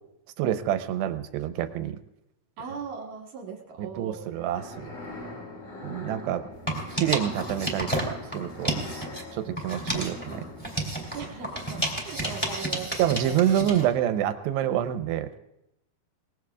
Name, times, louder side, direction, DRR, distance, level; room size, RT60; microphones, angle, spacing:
voice 1, 0.4-2.0 3.8-4.9 5.8-6.4 7.0-8.7 9.3-10.5 13.0-15.3, right 11 dB, 80° right, 10 dB, 2.7 m, -27 dB
voice 2, 2.6-4.3 6.1-6.5 9.4-9.8 11.1-13.4, right 6 dB, 60° right, 0 dB, 2.3 m, -40 dB
sound 1, 4.3-12.3, left 2 dB, 50° left, 6.0 m, -42 dB
sound 2, 6.5-9.2 9.6-13.9, right 1 dB, 5° left, 2.1 m, -31 dB
23.0 x 20.0 x 2.4 m, 0.87 s
omnidirectional pair, 5.0 m